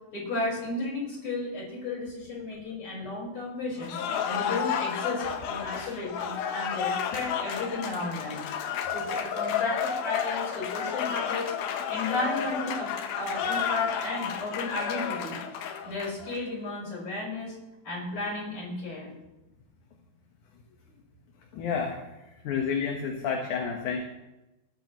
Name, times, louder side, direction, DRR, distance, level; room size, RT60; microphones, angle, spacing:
voice 1, 0.1-4.0 4.2-11.5 11.9-12.9 13.2-17.5 17.8-19.1, left 2 dB, 35° left, -4 dB, 6.1 m, -34 dB
Cheering / Applause, 3.8-16.4, left 7 dB, 80° left, 2.9 m, -31 dB
voice 2, 21.5-22.1 22.4-24.0, left 6 dB, 65° left, 1 dB, 2.6 m, -30 dB
21.0 x 13.5 x 3.2 m, 1.0 s
omnidirectional pair, 4.2 m